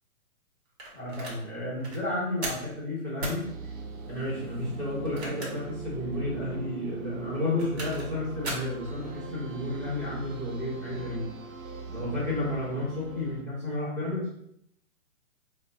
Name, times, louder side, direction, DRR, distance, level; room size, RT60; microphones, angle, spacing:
sound 1, 0.8-1.4 1.8-2.0 2.4-2.7 3.2-3.4 5.0-5.7 6.1-6.2 7.3-8.1 8.4-8.7, right 2 dB, 45° right, 1.0 m, -37 dB
voice 1, 0.9-3.7 4.1-11.2 11.9-14.3, left 1 dB, 5° left, -12 dB, 0.7 m, -32 dB
sound 2, 3.4-13.4, right 4 dB, 65° right, 0.6 m, -40 dB
4.2 x 2.1 x 2.7 m, 0.73 s
hypercardioid pair, 140°, 44 cm